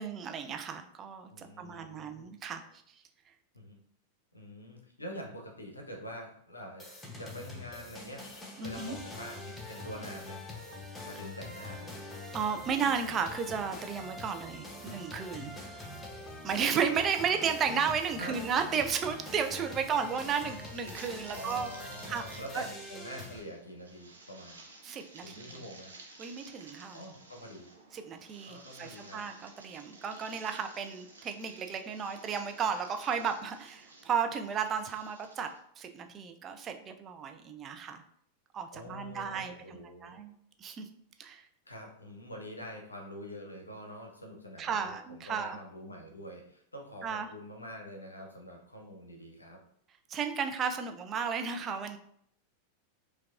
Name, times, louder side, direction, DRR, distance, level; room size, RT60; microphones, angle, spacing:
voice 1, 0.0-2.6 8.6-9.0 12.3-15.5 16.4-21.7 22.1-22.7 24.8-25.6 26.2-27.0 27.9-38.0 38.5-40.3 40.6-40.9 41.2-41.5 44.6-45.6 47.0-47.3 50.1-52.0, right 6 dB, 25° right, 6 dB, 0.4 m, -34 dB
voice 2, 1.3-2.3 3.5-3.8 4.3-6.8 7.2-10.4 11.0-12.0 18.2-18.4 19.9-20.0 21.3-24.6 25.2-25.9 26.9-27.7 28.5-29.2 38.7-40.2 41.7-49.6, equal, 80° left, 1 dB, 0.7 m, -45 dB
sound 1, 6.8-23.4, left 1 dB, 15° left, 0.7 m, -44 dB
sound 2, 19.9-35.6, right 3 dB, 75° right, 0.6 m, -54 dB
4.5 x 2.3 x 2.4 m, 0.67 s
figure-of-eight pair, 90°, 0 cm